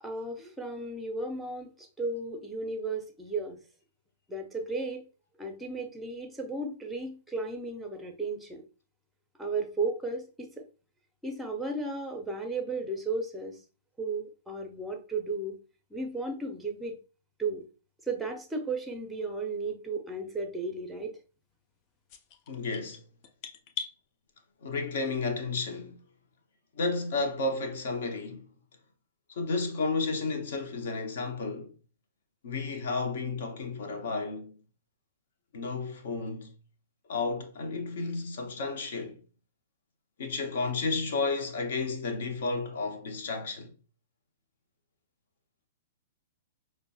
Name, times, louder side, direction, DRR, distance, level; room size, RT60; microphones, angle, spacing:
voice 1, 0.0-3.6 4.3-5.1 5.4-8.6 9.4-10.5 11.2-13.6 14.0-15.6 15.9-17.0 17.4-17.7 18.1-21.1, right 3 dB, 5° right, 0.7 m, -34 dB
sound 1, 22.1-24.0, left 7 dB, 35° left, 0.4 m, -40 dB
voice 2, 22.5-23.0 24.6-26.0 26.8-28.5 29.3-31.7 32.4-34.6 35.5-36.5 37.1-39.2 40.2-43.7, left 3 dB, 55° left, 0.8 m, -32 dB
5.2 x 2.2 x 2.7 m
figure-of-eight pair, 105°, 0 cm